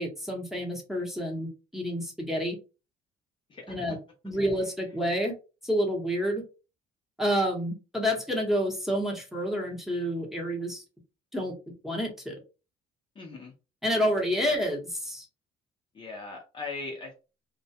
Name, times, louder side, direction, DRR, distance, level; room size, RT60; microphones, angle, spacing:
voice 1, 0.0-2.6 3.7-4.0 4.2-5.3 5.6-6.4 7.2-10.8 11.3-11.5 11.8-12.3 13.8-15.3, equal, ahead, -1 dB, 0.8 m, -29 dB
voice 2, 3.5-4.0 4.4-4.6 13.2-13.5 14.5-14.6 15.9-17.1, left 3 dB, 30° left, 1 dB, 0.5 m, -40 dB
2.2 x 2.1 x 2.7 m, 0.31 s
cardioid pair, 110°, 17 cm